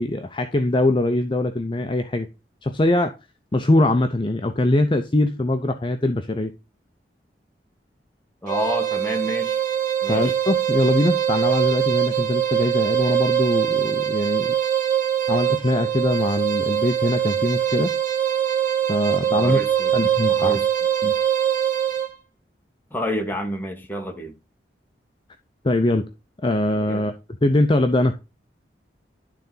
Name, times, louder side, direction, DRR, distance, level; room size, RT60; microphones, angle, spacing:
voice 1, 0.0-2.3 2.6-3.1 3.5-6.5 10.1-14.5 15.3-17.9 18.9-19.6 19.9-20.6 21.0-21.1 25.6-26.0 26.4-27.1 27.4-28.1, left 1 dB, 30° left, 0.6 m, -22 dB
voice 2, 8.4-9.6 10.0-10.3 19.3-19.9 20.3-20.7 22.9-24.4 26.9-27.1, equal, 10° left, 1.6 m, -29 dB
sound 1, 8.5-22.1, right 9 dB, 50° right, 1.9 m, -22 dB
11.5 x 4.0 x 3.9 m
head